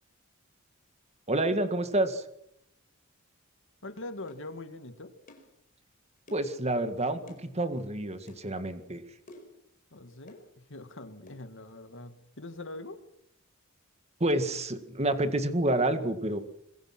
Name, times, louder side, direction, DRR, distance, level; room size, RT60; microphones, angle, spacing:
voice 1, 1.3-2.2 6.3-9.0 14.2-16.4, right 1 dB, 30° right, 9 dB, 1.9 m, -28 dB
voice 2, 3.8-5.1 9.9-13.0, left 2 dB, 60° left, 9 dB, 2.2 m, -43 dB
sound 1, 4.3-4.5 5.3-5.5 6.3-6.6 7.3-7.5 8.3-8.4 9.3-9.6 10.3-10.5 11.3-11.4, left 1 dB, 40° left, 4.9 m, -51 dB
26.0 x 21.5 x 6.1 m, 0.76 s
head